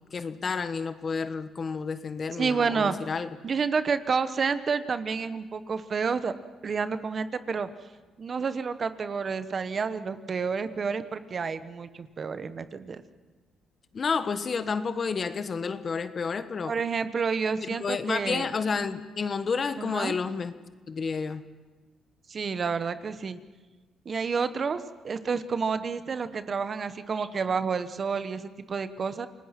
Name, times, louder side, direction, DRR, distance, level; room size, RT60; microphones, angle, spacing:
voice 1, 0.1-3.3 13.9-16.7 17.7-20.5 20.9-21.5, left 5 dB, 40° left, 11 dB, 1.2 m, -30 dB
voice 2, 2.4-3.0 3.4-6.3 6.6-7.7 8.2-13.0 16.7-18.5 19.8-20.1 22.3-23.4 24.0-29.3, right 5 dB, 45° right, 12 dB, 1.1 m, -29 dB
28.0 x 19.0 x 5.9 m, 1.3 s
cardioid pair, 90°, 0 cm